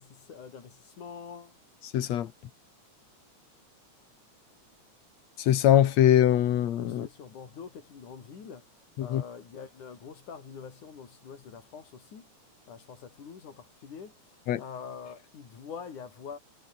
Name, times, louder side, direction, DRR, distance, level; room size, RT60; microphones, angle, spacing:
voice 1, 0.0-1.6 6.9-8.7 9.0-12.3 12.7-16.4, left 6 dB, 85° left, 4.9 m, -45 dB
voice 2, 1.9-2.3 5.4-7.1 9.0-9.2 14.5-14.6, left 11 dB, 65° left, 2.5 m, -22 dB
omnidirectional pair, 3.4 m